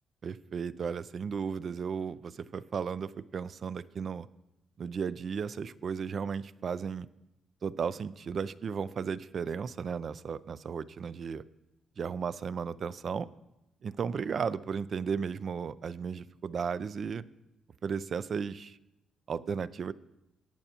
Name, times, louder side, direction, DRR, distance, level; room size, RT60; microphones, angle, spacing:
voice 1, 0.2-4.3 4.8-7.1 7.6-11.4 12.0-13.3 13.8-17.2 17.8-18.8 19.3-19.9, right 6 dB, 50° right, 17 dB, 0.4 m, -35 dB
17.5 x 9.0 x 2.9 m, 0.90 s
cardioid pair, 90°, 0 cm